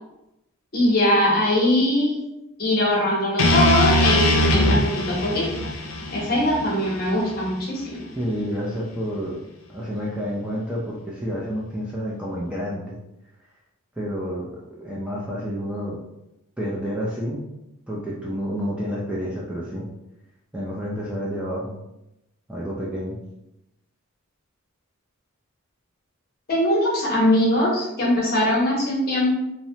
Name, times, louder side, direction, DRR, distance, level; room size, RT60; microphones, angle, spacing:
voice 1, 0.7-2.2 2.6-5.5 6.1-8.0 26.5-29.3, left 1 dB, 45° left, -3 dB, 0.8 m, -21 dB
sound 1, 3.4-7.5, left 1 dB, 70° left, 0.4 m, -21 dB
voice 2, 8.2-9.4 9.7-13.0 14.0-16.0 16.6-17.4 17.9-19.8 20.5-21.7 22.5-23.2, equal, 5° right, -6 dB, 0.3 m, -29 dB
2.9 x 2.1 x 2.7 m, 0.89 s
head